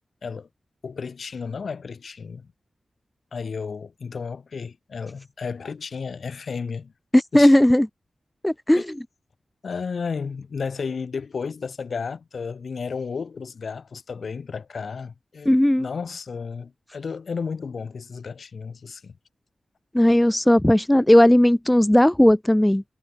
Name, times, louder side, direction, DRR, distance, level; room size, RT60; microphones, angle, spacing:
voice 1, 0.8-2.5 3.3-6.9 7.3-7.6 8.7-8.8 9.6-19.1, left 5 dB, 65° left, 7.9 m, -33 dB
voice 2, 7.1-7.9 8.4-8.9 15.5-15.9 19.9-22.8, left 1 dB, 10° left, 0.8 m, -16 dB
cardioid pair, 65°, 0 cm